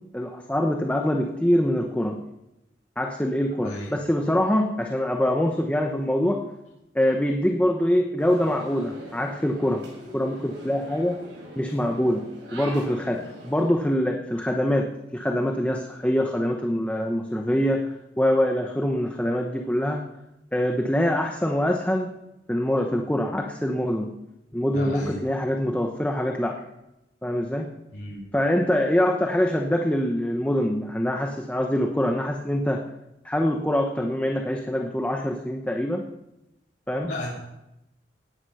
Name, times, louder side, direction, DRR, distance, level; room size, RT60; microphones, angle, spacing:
voice 1, 0.1-2.2 3.0-6.4 6.9-9.8 10.1-11.2 11.6-12.2 12.5-17.8 18.2-20.0 20.5-22.1 22.5-24.1 24.5-26.6 27.2-27.7 28.3-32.8 33.2-36.0 36.9-37.1, equal, 10° left, 2 dB, 1.0 m, -24 dB
sound 1, 8.2-13.7, equal, 85° right, 7.0 m, -42 dB
voice 2, 24.7-25.2 27.9-28.2 37.1-37.3, left 1 dB, 80° left, -7 dB, 3.4 m, -33 dB
18.0 x 9.8 x 5.6 m, 0.91 s
head